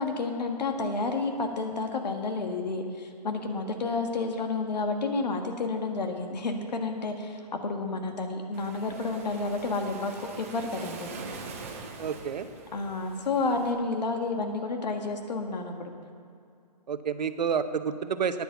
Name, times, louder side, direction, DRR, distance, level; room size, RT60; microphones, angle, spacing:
voice 1, 0.0-11.1 12.7-15.9, left 3 dB, 80° left, 4 dB, 1.6 m, -30 dB
Waves surf, 8.5-13.7, right 4 dB, 20° right, 0.7 m, -43 dB
voice 2, 12.0-12.5 16.9-18.4, right 7 dB, 80° right, 11 dB, 0.8 m, -29 dB
9.7 x 8.4 x 7.0 m, 2.4 s
hypercardioid pair, 180°, 21 cm